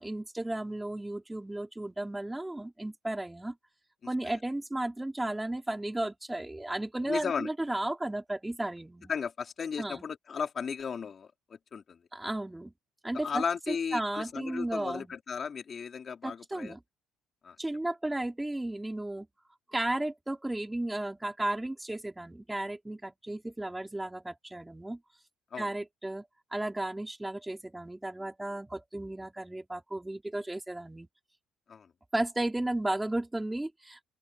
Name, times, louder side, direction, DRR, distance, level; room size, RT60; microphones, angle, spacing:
voice 1, 0.0-3.6 4.1-9.1 9.8-10.0 12.1-12.7 13.0-15.1 16.2-16.8 17.6-19.3 19.7-25.0 25.6-26.2 26.5-31.1 32.1-34.0, right 1 dB, 10° right, 4.5 m, -34 dB
voice 2, 7.0-7.5 9.1-11.3 11.7-12.0 13.1-16.7 17.4-17.6 25.5-25.7 31.7-31.9, left 6 dB, 40° left, 3.2 m, -35 dB
open air
cardioid pair, 100°, 0 cm